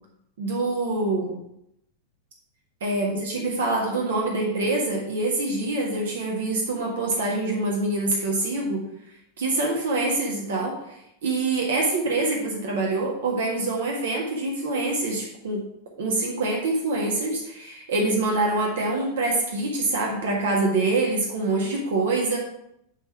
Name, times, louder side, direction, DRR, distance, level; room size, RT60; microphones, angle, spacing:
voice 1, 0.4-1.4 2.8-8.8 9.4-15.7 16.0-22.4, right 2 dB, 60° right, -1 dB, 1.6 m, -25 dB
10.0 x 3.6 x 5.8 m, 0.80 s
figure-of-eight pair, 90°, 0 cm